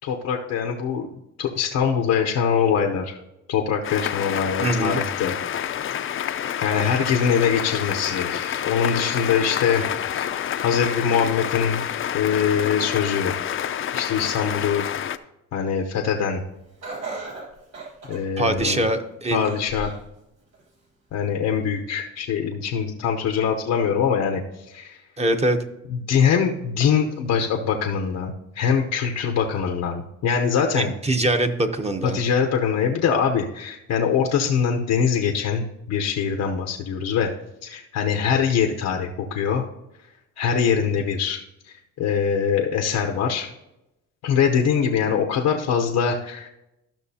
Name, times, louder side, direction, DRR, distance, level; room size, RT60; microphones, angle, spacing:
voice 1, 0.0-1.1 1.4-3.2 3.5-5.3 6.6-9.8 10.2-10.3 10.6-11.8 12.1-13.3 13.9-14.8 15.5-16.4 18.1-18.9 19.3-19.9 21.1-24.4 24.7-25.0 25.9-30.9 32.0-37.3 37.6-39.6 40.4-41.4 42.0-43.5 44.2-46.5, left 7 dB, 90° left, 2 dB, 0.9 m, -23 dB
sound 1, 3.8-15.2, left 9 dB, 45° left, 0.4 m, -28 dB
voice 2, 4.6-5.0 18.4-19.5 25.2-25.6 30.7-32.2, right 1 dB, 20° right, 7 dB, 0.8 m, -23 dB
Laughter, 16.8-18.9 19.4-20.0 20.5-20.6 21.6-21.7, right 3 dB, 60° right, 3.1 m, -36 dB
13.5 x 5.9 x 2.8 m, 0.89 s
cardioid pair, 90°, 30 cm